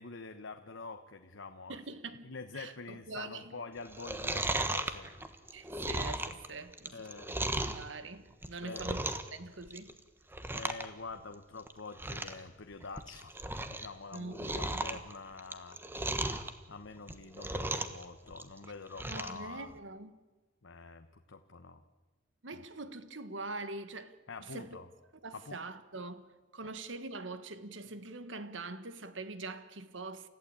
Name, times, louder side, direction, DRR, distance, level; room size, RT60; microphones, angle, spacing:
voice 1, 0.0-1.8 2.2-5.1 6.9-7.3 8.6-8.9 10.5-16.2 16.7-19.7 20.6-21.8 24.3-24.9 25.3-25.6, left 4 dB, 70° left, 1.1 m, -46 dB
voice 2, 1.7-3.5 5.5-10.0 14.1-15.0 19.0-20.1 22.4-24.8 25.2-30.3, right 3 dB, 70° right, 1.5 m, -44 dB
Chewing mastication, 3.9-7.8 8.3-9.4 9.6-10.0 10.3-10.9 11.1-11.2 11.7-11.8 12.0-12.4 12.8-13.9 14.1-16.5 17.0-18.0 18.3-19.4 19.8-19.9, right 2 dB, 10° right, 1.2 m, -36 dB
29.5 x 15.0 x 8.7 m
head